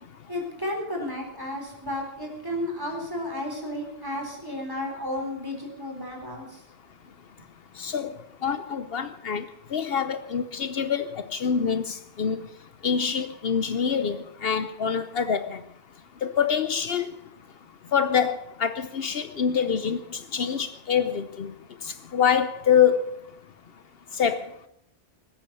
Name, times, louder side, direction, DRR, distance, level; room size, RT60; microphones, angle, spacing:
voice 1, 0.3-6.5, left 1 dB, 20° right, 1 dB, 4.0 m, -32 dB
voice 2, 7.8-8.1 8.4-9.4 9.7-12.5 12.8-15.6 16.2-17.1 17.9-21.5 22.1-23.2 24.2-24.5, left 7 dB, 70° left, 11 dB, 1.0 m, -25 dB
19.5 x 8.6 x 6.8 m, 0.73 s
omnidirectional pair, 1.0 m